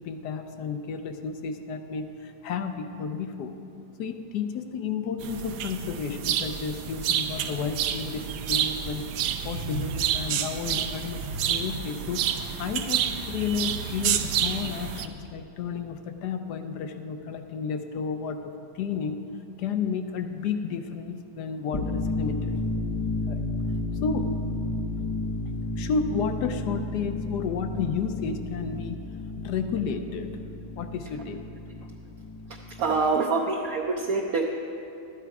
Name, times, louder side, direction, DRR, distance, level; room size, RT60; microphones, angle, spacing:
voice 1, 0.0-3.5 4.0-9.1 9.4-19.2 19.6-22.5 23.3-23.4 24.0-24.3 25.8-29.0 29.4-30.3 30.8-31.4, left 6 dB, 65° left, 7 dB, 1.1 m, -32 dB
sound 1, 5.2-15.1, right 9 dB, 80° right, 1.4 m, -29 dB
sound 2, 21.6-33.2, left 2 dB, 35° left, 0.5 m, -32 dB
voice 2, 32.7-34.4, right 4 dB, 65° right, 0 dB, 0.9 m, -25 dB
13.0 x 10.5 x 4.8 m, 2.8 s
omnidirectional pair, 2.3 m